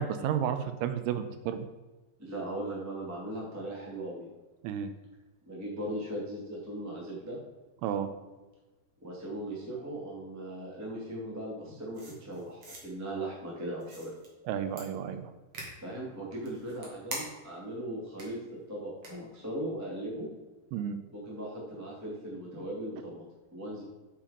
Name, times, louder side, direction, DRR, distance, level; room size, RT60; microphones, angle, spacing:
voice 1, 0.0-1.6 4.6-4.9 7.8-8.1 14.5-15.3 20.7-21.0, right 8 dB, 85° right, 9 dB, 3.0 m, -32 dB
voice 2, 2.2-4.3 5.4-7.4 9.0-14.1 15.8-18.4 18.7-20.3 21.1-23.2 23.5-23.8, right 1 dB, 10° right, -5 dB, 0.7 m, -38 dB
sound 1, 11.9-12.8 13.8-14.3 14.8-14.9 15.5-15.7 16.4-17.5 18.2-18.3 19.0-19.1, right 2 dB, 50° right, 1.8 m, -42 dB
7.5 x 7.1 x 5.1 m, 1.2 s
omnidirectional pair, 5.5 m